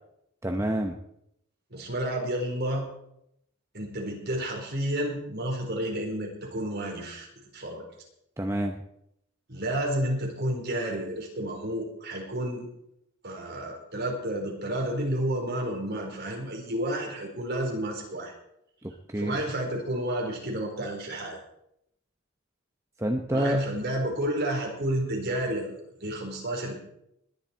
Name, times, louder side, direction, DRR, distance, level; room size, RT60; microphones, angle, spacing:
voice 1, 0.4-1.0 8.4-8.8 18.8-19.4 23.0-23.6, right 1 dB, 15° right, 3 dB, 0.8 m, -28 dB
voice 2, 1.7-2.8 3.7-7.3 7.5-7.9 9.5-12.7 13.2-18.3 19.1-21.4 23.3-25.7 26.0-26.8, right 1 dB, 50° right, 0 dB, 4.4 m, -30 dB
20.5 x 10.5 x 4.5 m, 0.77 s
head